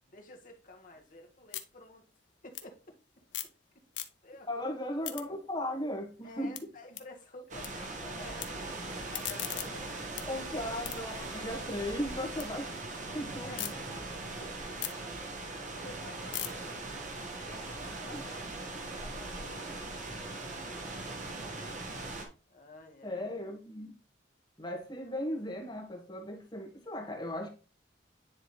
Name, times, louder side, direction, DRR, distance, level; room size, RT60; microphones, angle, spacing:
voice 1, 0.1-2.1 2.4-3.0 3.4-3.5 3.9-4.7 6.2-10.4 13.4-14.1 14.4-17.0 17.3-21.6 22.5-23.3 25.0-25.1, left 2 dB, 45° left, 1.5 m, -52 dB
sound 1, 0.6-3.6 3.9-4.5 4.8-7.7 8.0-8.5 8.9-12.5 12.9-13.7 14.2-18.3, left 12 dB, 70° left, 0.8 m, -43 dB
voice 2, 4.5-6.6 10.3-12.8 13.1-13.7 18.1-18.2 23.0-23.9 24.6-27.5, left 1 dB, 25° left, 1.5 m, -37 dB
sound 2, 7.5-22.3, right 2 dB, 40° right, 1.2 m, -40 dB
Stream / Boat Water vehicle, 10.1-17.6, right 1 dB, 85° right, 4.0 m, -58 dB
9.9 x 3.6 x 3.1 m
head